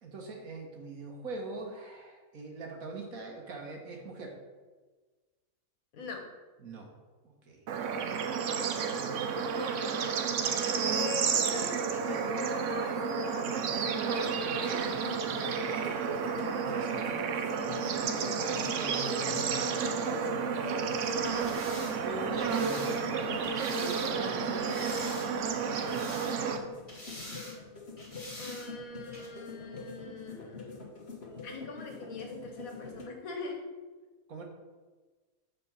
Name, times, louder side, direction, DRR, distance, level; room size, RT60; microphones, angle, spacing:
voice 1, 0.0-4.4 6.6-6.9 7.2-7.6 14.6-14.8 16.6-17.0 18.1-19.8 20.2-20.6 21.8-25.0 34.3-34.4, right 2 dB, 80° right, 1 dB, 1.8 m, -43 dB
voice 2, 5.9-6.2 9.3-9.9 10.8-13.6 15.6-16.5 28.4-30.8 31.4-33.6, left 3 dB, 85° left, 2 dB, 1.6 m, -42 dB
Bird / Insect / Frog, 7.7-26.6, right 6 dB, 65° right, 1.0 m, -31 dB
sound 1, 13.5-33.1, left 4 dB, 50° left, 1.4 m, -45 dB
sound 2, 21.2-24.1 24.6-25.5 25.7-26.6 26.9-27.6 28.0-28.7 29.1-29.3, left 1 dB, 25° left, 1.7 m, -45 dB
7.2 x 4.3 x 5.7 m, 1.3 s
omnidirectional pair, 1.4 m